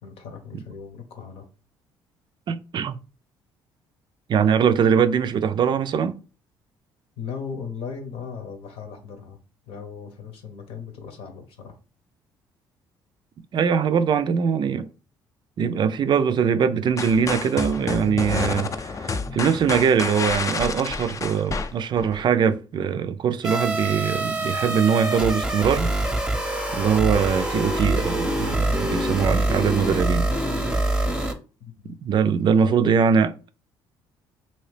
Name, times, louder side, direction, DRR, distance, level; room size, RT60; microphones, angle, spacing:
voice 1, 0.0-1.5 7.2-9.4 9.7-11.8 31.6-32.0 32.6-33.0, left 6 dB, 70° left, 1.0 m, -37 dB
voice 2, 2.5-3.0 4.3-6.2 13.5-14.9 15.6-25.9 26.7-30.3 32.0-33.3, right 7 dB, 50° right, 0.4 m, -22 dB
sound 1, 17.0-22.2, left 4 dB, 30° left, 0.5 m, -29 dB
sound 2, 23.4-31.3, right 1 dB, 10° right, 0.7 m, -25 dB
2.8 x 2.8 x 3.2 m
supercardioid pair, 65°, 10 cm